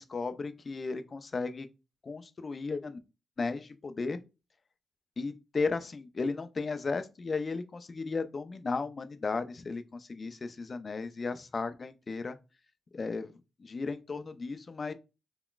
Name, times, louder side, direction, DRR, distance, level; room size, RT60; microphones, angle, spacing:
voice 1, 0.0-1.7 2.0-3.0 3.4-4.2 5.2-12.4 12.9-13.3 13.6-14.9, left 4 dB, 45° left, 0.4 m, -35 dB
3.9 x 2.2 x 2.2 m
supercardioid pair, 45°, 0 cm